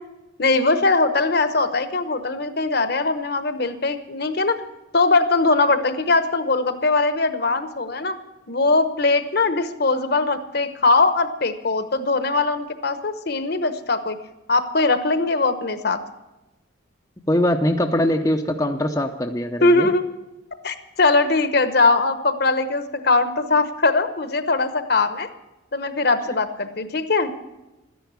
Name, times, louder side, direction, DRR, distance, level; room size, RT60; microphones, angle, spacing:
voice 1, 0.4-4.6 4.9-8.1 8.5-14.2 14.5-16.0 19.6-20.0 20.6-25.3 25.7-27.3, left 3 dB, 50° left, 10 dB, 1.0 m, -21 dB
voice 2, 17.3-19.9, left 1 dB, 15° left, 3 dB, 0.7 m, -22 dB
13.0 x 10.5 x 8.2 m, 1.0 s
head